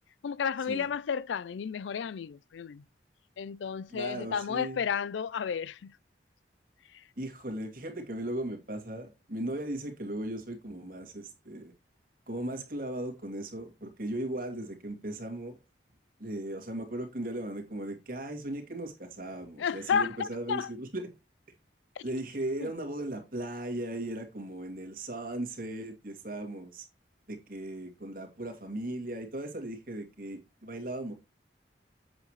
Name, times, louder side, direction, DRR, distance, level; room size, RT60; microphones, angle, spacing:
voice 1, 0.2-2.8 3.4-5.9 19.6-20.7 22.0-22.1 22.6-22.7, left 7 dB, 85° left, 0.4 m, -32 dB
voice 2, 3.9-4.8 7.2-11.7 12.3-15.6 16.2-21.1 22.0-26.8 27.3-31.1, right 1 dB, 50° right, 2.3 m, -37 dB
8.2 x 7.6 x 3.1 m
head